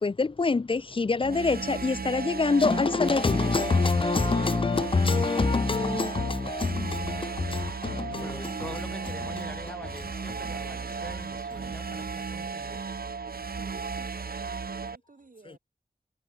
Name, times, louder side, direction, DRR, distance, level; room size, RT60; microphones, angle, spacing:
voice 1, 0.0-8.8 9.2-9.4, left 4 dB, 35° left, 0.5 m, -26 dB
sound 1, 1.2-15.0, right 5 dB, 75° right, 1.5 m, -35 dB
voice 2, 8.1-12.8, equal, 5° left, 2.9 m, -45 dB
voice 3, 13.4-15.6, right 3 dB, 60° right, 4.4 m, -53 dB
wide cardioid pair, 60°, 16 cm